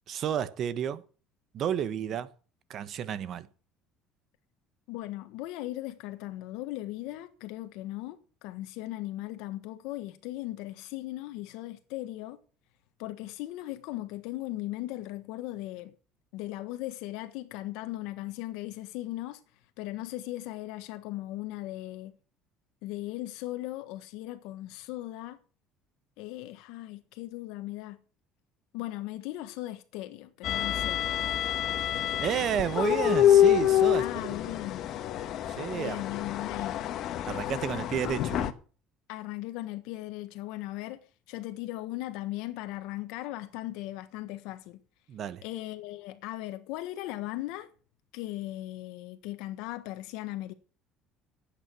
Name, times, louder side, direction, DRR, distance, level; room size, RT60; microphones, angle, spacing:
voice 1, 0.1-1.0 1.5-2.3 2.7-3.5 32.2-34.0 34.5-34.6 35.5-36.0 37.2-38.5 45.1-45.4, right 9 dB, 55° right, 1.3 m, -31 dB
voice 2, 4.9-12.4 13.0-15.9 16.3-19.4 19.8-22.1 22.8-25.4 26.2-28.0 28.7-31.0 33.9-34.8 35.7-36.8 39.1-44.8 45.4-47.7 48.1-50.5, left 16 dB, 80° left, 1.3 m, -38 dB
sound 1, 30.4-38.5, left 11 dB, 60° left, 1.4 m, -27 dB
16.5 x 8.9 x 6.3 m
supercardioid pair, 100°, 0 cm